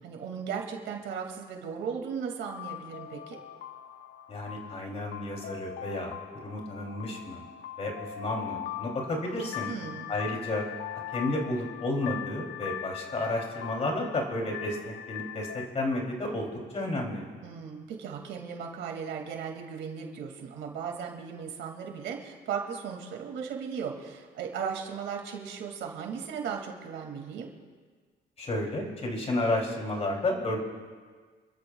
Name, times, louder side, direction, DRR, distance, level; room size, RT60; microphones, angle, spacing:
voice 1, 0.0-3.4 9.7-10.1 17.4-27.5, right 7 dB, 85° right, 2 dB, 2.4 m, -36 dB
sound 1, 2.4-15.7, left 11 dB, 85° left, 0.8 m, -41 dB
voice 2, 4.3-6.1 6.4-7.4 7.8-9.7 10.1-10.6 11.1-17.2 28.4-30.6, left 1 dB, 35° left, 0 dB, 3.0 m, -32 dB
28.0 x 13.5 x 2.4 m, 1.5 s
cardioid pair, 135°, 19 cm